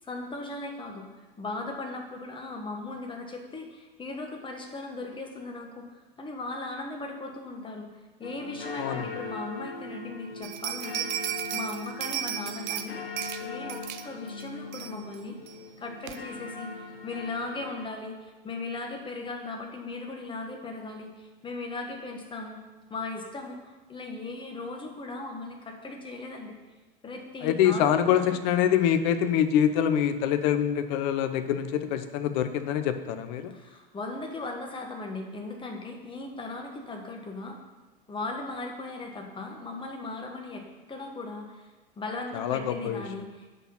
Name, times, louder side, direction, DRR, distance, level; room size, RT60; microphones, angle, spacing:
voice 1, 0.0-7.9 8.2-13.0 13.4-15.4 15.8-16.7 17.0-22.6 22.9-26.5 27.0-28.3 33.5-37.6 38.1-41.7 42.0-43.5, left 2 dB, 15° left, 2 dB, 1.5 m, -38 dB
sound 1, 8.2-17.9, left 4 dB, 80° left, 1.0 m, -41 dB
sound 2, 10.4-12.9 13.2-13.4 13.7-14.0 14.4-14.5 14.7-15.2 15.5-15.6 16.1-16.2, right 11 dB, 50° right, 0.7 m, -34 dB
voice 2, 27.4-33.5 42.3-43.0, left 9 dB, 50° left, 9 dB, 0.8 m, -25 dB
8.1 x 6.2 x 5.7 m, 1.2 s
figure-of-eight pair, 80°, 29 cm